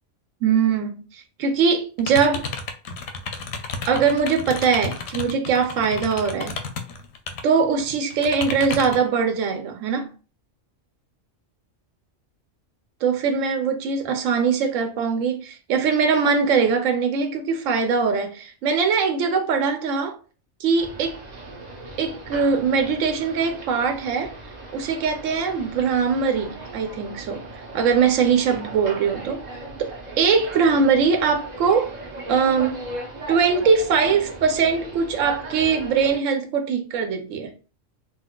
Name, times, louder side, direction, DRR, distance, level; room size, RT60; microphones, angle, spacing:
voice 1, 0.4-2.5 3.9-6.6 7.4-10.1 13.0-20.2 20.6-21.2 22.0-24.3 24.7-27.5 27.7-29.4 29.8-31.9 32.3-32.8 33.3-37.5, right 5 dB, 85° right, 1.0 m, -21 dB
sound 1, 2.0-7.4 7.8-9.1, left 4 dB, 65° left, 0.8 m, -32 dB
sound 2, 20.8-36.2, right 2 dB, 40° right, 0.8 m, -37 dB
3.9 x 2.3 x 2.2 m
omnidirectional pair, 1.3 m